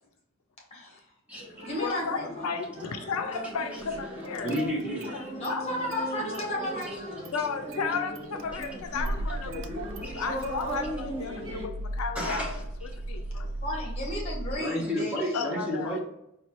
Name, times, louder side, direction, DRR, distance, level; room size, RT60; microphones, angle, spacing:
voice 1, 0.7-1.1 1.5-2.5 5.3-7.3 13.6-15.2, left 1 dB, 30° left, -1 dB, 1.0 m, -34 dB
sound 1, 1.4-11.7, right 1 dB, 25° right, 1.0 m, -38 dB
voice 2, 1.8-4.5 5.1-5.2 5.5-5.6 7.3-9.7 10.0-12.6 13.1-13.5 15.3-15.9, left 5 dB, 80° left, 6 dB, 0.4 m, -34 dB
Car / Engine starting, 3.8-4.0 4.3-5.2 5.4-6.5 6.8-14.6, right 1 dB, 60° right, 0.3 m, -37 dB
voice 3, 4.4-5.3 7.4-7.5 10.0-10.2 12.1-12.6 14.6-16.0, equal, 5° right, -4 dB, 0.8 m, -31 dB
4.1 x 2.3 x 2.9 m, 0.83 s
head